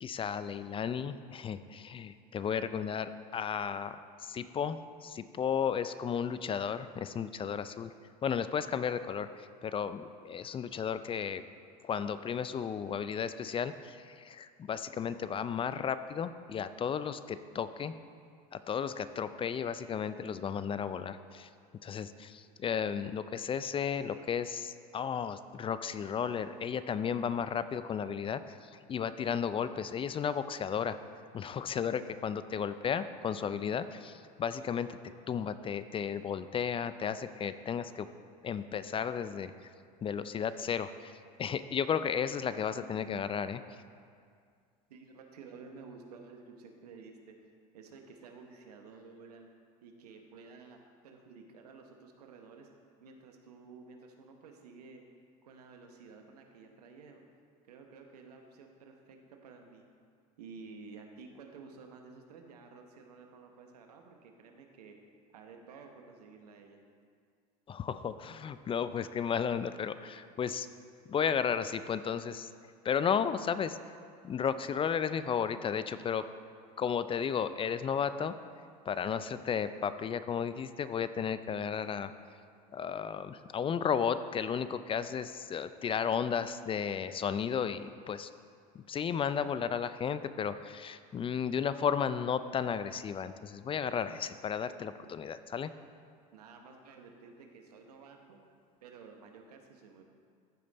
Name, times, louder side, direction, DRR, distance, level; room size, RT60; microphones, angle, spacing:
voice 1, 0.0-7.9 8.2-11.4 11.8-17.9 18.5-21.5 21.8-31.0 31.3-34.9 35.3-38.1 38.4-39.5 40.0-43.6 67.7-70.7 71.1-72.5 72.8-73.8 74.2-76.2 76.8-78.3 78.9-82.1 82.7-88.3 88.7-95.7, left 7 dB, 25° left, 13 dB, 0.4 m, -34 dB
voice 2, 44.9-47.3 47.7-49.5 49.8-52.7 53.0-55.0 55.4-57.2 57.7-59.9 60.4-64.9 65.3-66.8 96.3-98.4 98.8-100.0, right 4 dB, 90° right, 3 dB, 1.0 m, -52 dB
14.5 x 5.2 x 4.1 m, 2.2 s
hypercardioid pair, 85°, 20 cm